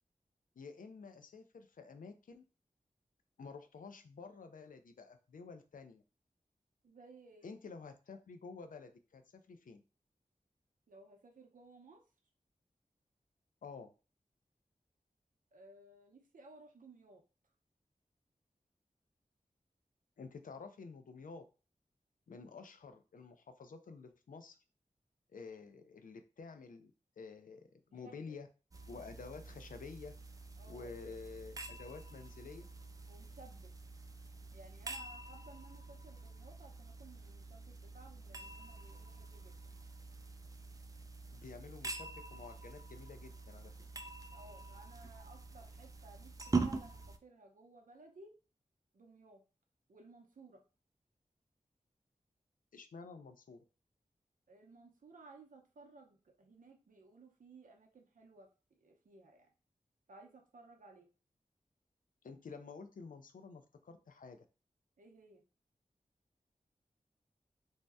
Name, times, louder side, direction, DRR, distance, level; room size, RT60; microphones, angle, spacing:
voice 1, 0.6-2.4 3.4-6.0 7.4-9.8 13.6-13.9 20.2-21.5 22.3-24.6 25.3-28.5 28.9-30.1 30.7-32.7 41.3-43.7 52.7-53.6 62.2-64.4, left 4 dB, 75° left, 8 dB, 0.4 m, -50 dB
voice 2, 6.8-7.6 10.9-12.0 15.5-17.2 28.0-28.4 30.6-30.9 33.1-33.7 34.5-39.6 44.3-48.3 48.9-49.4 49.9-50.6 54.5-58.5 58.8-59.5 60.1-61.1 65.0-65.4, right 3 dB, 70° right, 2 dB, 0.6 m, -58 dB
sound 1, 28.7-47.2, right 3 dB, 25° right, 0.3 m, -45 dB
2.7 x 2.1 x 3.3 m, 0.33 s
wide cardioid pair, 50°, 14 cm